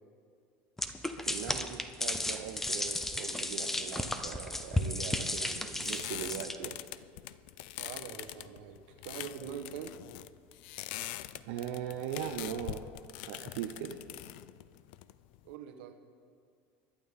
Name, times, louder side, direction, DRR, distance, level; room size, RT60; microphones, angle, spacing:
sound 1, 0.8-6.6, left 1 dB, 5° left, 0.6 m, -34 dB
voice 1, 1.2-6.8 11.5-12.8 13.2-14.0, right 9 dB, 70° right, 2 dB, 0.9 m, -40 dB
sound 2, 5.1-15.5, left 15 dB, 70° left, 0.4 m, -44 dB
voice 2, 7.8-9.9 15.4-16.0, right 8 dB, 85° right, 5 dB, 1.3 m, -44 dB
25.5 x 11.5 x 3.7 m, 2.2 s
cardioid pair, 165°, 6 cm